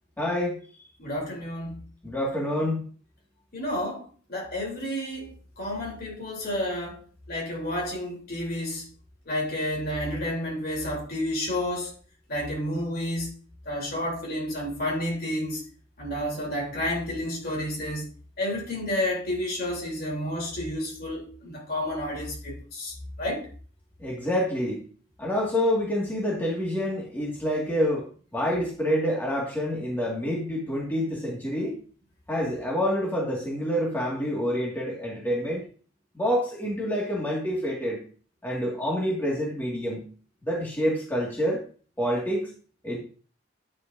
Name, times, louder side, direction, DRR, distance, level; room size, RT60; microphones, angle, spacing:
voice 1, 0.2-0.6 2.0-2.8 24.0-24.8 25.2-28.1 28.3-31.8 32.3-35.6 36.2-38.0 38.4-40.1 40.4-41.6 42.0-42.5 42.8-43.0, equal, 10° left, 1.8 m, -27 dB
voice 2, 1.0-1.8 3.5-8.9 9.2-11.9 12.3-13.3 13.6-15.7 16.0-18.1 18.4-23.5, left 1 dB, 50° left, 3.2 m, -30 dB
9.8 x 8.2 x 2.6 m
head